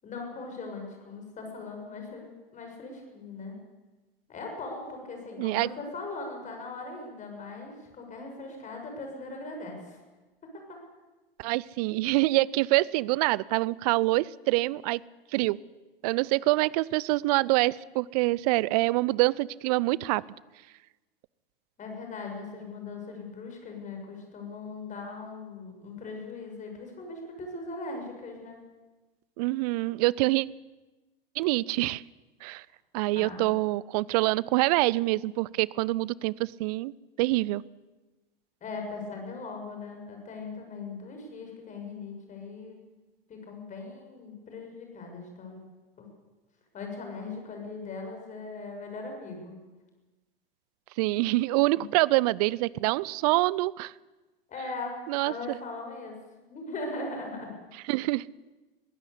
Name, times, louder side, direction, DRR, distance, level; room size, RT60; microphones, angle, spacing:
voice 1, 0.0-3.6 4.3-10.0 10.4-10.6 21.8-28.6 33.1-33.5 38.6-42.8 43.3-45.6 46.0-46.1 46.7-49.6 51.7-51.8 54.5-55.0 55.2-56.2 56.5-57.5, left 3 dB, 25° left, 3 dB, 6.6 m, -39 dB
voice 2, 5.4-5.7 11.4-15.0 15.3-15.6 16.0-20.2 29.4-30.5 31.4-32.0 32.4-32.6 32.9-36.9 37.2-37.6 51.0-53.9 55.1-55.3 57.9-58.3, right 20 dB, 40° right, 24 dB, 0.6 m, -25 dB
21.5 x 16.0 x 8.4 m, 1.2 s
figure-of-eight pair, 95°, 29 cm